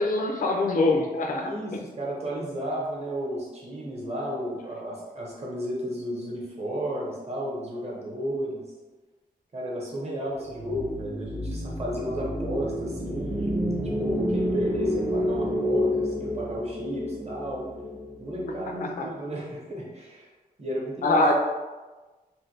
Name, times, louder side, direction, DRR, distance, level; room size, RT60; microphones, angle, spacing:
voice 1, 0.0-1.4 21.0-21.3, left 2 dB, 55° left, 2 dB, 0.4 m, -23 dB
voice 2, 1.3-8.6 9.5-13.6 14.0-17.6 18.2-20.3 20.6-21.3, equal, 40° right, -4 dB, 0.9 m, -33 dB
sound 1, 10.5-18.8, equal, 15° right, 0.4 m, -29 dB
3.2 x 2.1 x 3.1 m, 1.2 s
wide cardioid pair, 130°, 17 cm